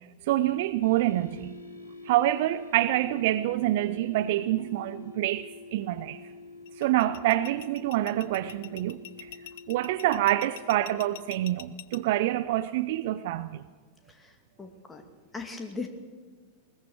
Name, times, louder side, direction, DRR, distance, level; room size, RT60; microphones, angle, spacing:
voice 1, 0.3-1.5 2.0-6.2 6.8-9.3 9.7-13.6, right 14 dB, 50° right, 0.6 m, -27 dB
sound 1, 0.8-11.1, left 3 dB, 90° right, 2.1 m, -47 dB
sound 2, 6.7-12.0, left 12 dB, 55° left, 0.8 m, -44 dB
voice 2, 14.6-15.0 15.3-15.9, left 4 dB, 15° left, 2.3 m, -38 dB
21.0 x 20.0 x 6.4 m
figure-of-eight pair, 90°, 0 cm